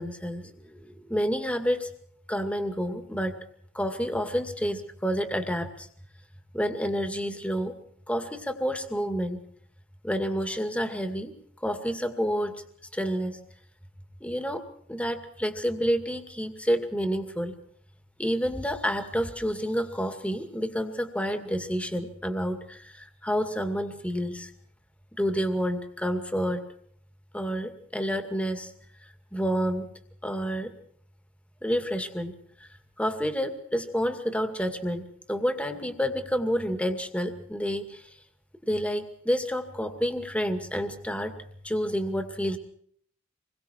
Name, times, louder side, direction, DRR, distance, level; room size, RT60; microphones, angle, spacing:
voice 1, 0.0-1.9 2.3-3.4 3.7-5.9 6.5-7.7 8.1-9.4 10.0-11.3 11.6-12.6 12.9-13.4 14.2-14.6 14.9-17.6 18.2-24.5 25.2-26.6 27.3-28.7 29.0-29.9 30.2-30.7 31.6-32.3 32.6-32.7 33.0-38.0 38.7-41.3 41.6-42.6, equal, 5° left, 7 dB, 2.2 m, -29 dB
27.0 x 22.5 x 4.6 m, 0.63 s
head